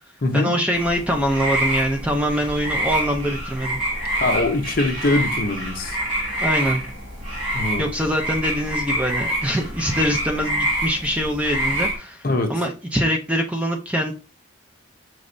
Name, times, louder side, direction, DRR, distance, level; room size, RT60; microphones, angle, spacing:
voice 1, 0.3-3.8 6.4-6.8 7.8-14.1, equal, 5° right, 0.4 m, -23 dB
sound 1, 0.7-12.0, right 1 dB, 40° right, 2.0 m, -26 dB
voice 2, 4.2-6.0 7.5-7.9 12.2-12.5, left 2 dB, 45° left, 0.6 m, -22 dB
5.2 x 3.1 x 2.5 m
head